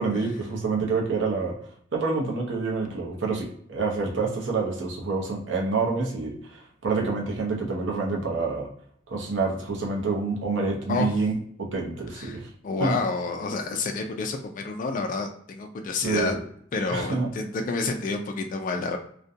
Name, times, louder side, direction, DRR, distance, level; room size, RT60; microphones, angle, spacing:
voice 1, 0.0-1.5 1.9-8.7 9.1-12.5 12.8-13.0 16.0-16.4 16.9-17.3, right 4 dB, 65° right, -1 dB, 0.6 m, -27 dB
voice 2, 10.9-11.2 12.1-12.4 12.6-16.4 16.7-19.0, left 3 dB, 45° left, 4 dB, 0.3 m, -29 dB
2.4 x 2.1 x 2.6 m, 0.64 s
head